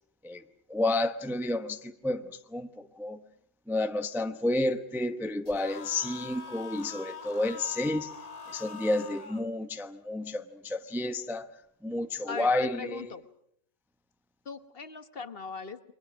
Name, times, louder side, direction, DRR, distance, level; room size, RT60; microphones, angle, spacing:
voice 1, 0.7-2.2 2.5-3.2 3.7-8.1 8.5-11.5 11.8-13.1, left 2 dB, ahead, 0.7 m, -30 dB
sound 1, 5.5-9.5, left 5 dB, 30° left, 1.3 m, -44 dB
voice 2, 12.3-13.2 14.4-15.9, left 5 dB, 45° left, 1.3 m, -39 dB
30.0 x 23.0 x 6.2 m
omnidirectional pair, 1.4 m